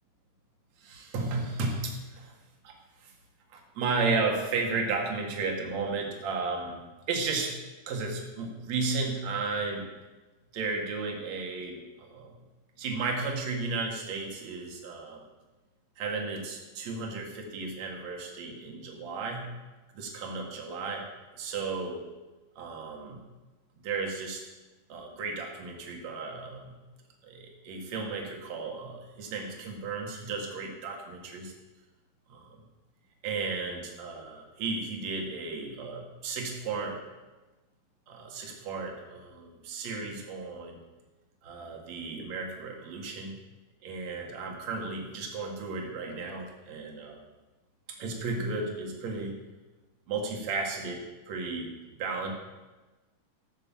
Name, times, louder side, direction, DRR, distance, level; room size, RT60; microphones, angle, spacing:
voice 1, 0.8-2.4 2.6-3.1 3.5-6.8 7.1-7.5 7.9-9.9 10.5-12.3 12.8-15.2 16.0-19.5 19.9-21.1 21.3-22.0 22.6-23.2 23.8-24.4 24.9-26.7 27.2-31.5 32.3-32.6 33.2-37.0 38.1-40.8 41.4-43.3 43.8-47.2 48.0-49.4 50.1-52.3, right 4 dB, 55° right, 0 dB, 3.0 m, -34 dB
14.5 x 6.6 x 7.3 m, 1.2 s
omnidirectional pair, 3.9 m